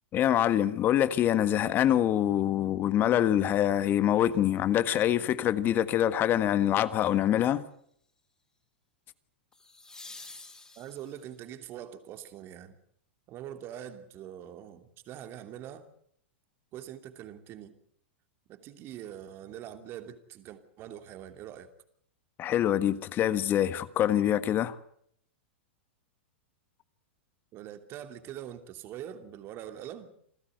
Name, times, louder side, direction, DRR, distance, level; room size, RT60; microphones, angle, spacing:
voice 1, 0.1-7.6 22.4-24.7, left 11 dB, 35° left, 14 dB, 1.5 m, -25 dB
sound 1, 6.5-6.8 9.5-11.4 14.3-14.4, left 3 dB, 10° left, 4.5 m, -49 dB
voice 2, 10.7-12.8 13.3-15.9 16.7-17.8 18.5-21.7 27.5-30.1, right 10 dB, 40° right, 7 dB, 2.9 m, -43 dB
28.0 x 14.5 x 8.1 m, 0.67 s
hypercardioid pair, 115°, 6 cm